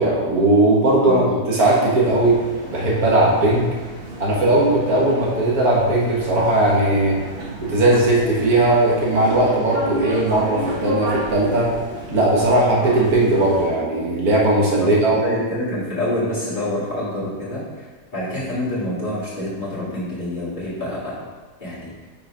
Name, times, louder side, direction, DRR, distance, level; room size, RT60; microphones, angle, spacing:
voice 1, 0.0-2.4 2.7-3.7 4.2-7.2 7.6-11.7 12.1-15.4, right 2 dB, 70° right, -4 dB, 1.7 m, -18 dB
sound 1, 2.0-13.7, equal, 40° right, 1.0 m, -32 dB
voice 2, 15.2-21.2 21.6-22.1, left 1 dB, 30° left, -10 dB, 2.2 m, -27 dB
5.6 x 4.0 x 4.9 m, 1.3 s
omnidirectional pair, 1.7 m